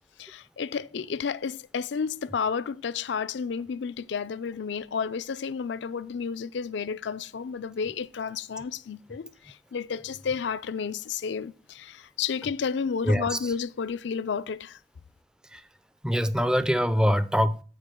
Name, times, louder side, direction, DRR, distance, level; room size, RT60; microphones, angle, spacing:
voice 1, 0.2-14.8, left 6 dB, 70° left, 0.4 m, -31 dB
voice 2, 13.0-13.5 15.5-15.6 16.0-17.6, equal, 5° right, 0.4 m, -24 dB
13.5 x 4.8 x 3.7 m
head